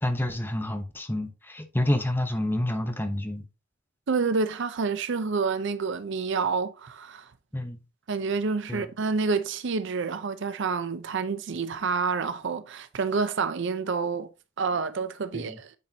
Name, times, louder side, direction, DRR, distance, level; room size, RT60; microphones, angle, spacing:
voice 1, 0.0-3.5 7.5-7.8 8.7-8.9 15.3-15.6, left 1 dB, 10° left, 0.9 m, -28 dB
voice 2, 4.1-7.3 8.1-14.3 14.6-15.7, right 4 dB, 65° right, 0.6 m, -28 dB
9.1 x 4.3 x 2.8 m
head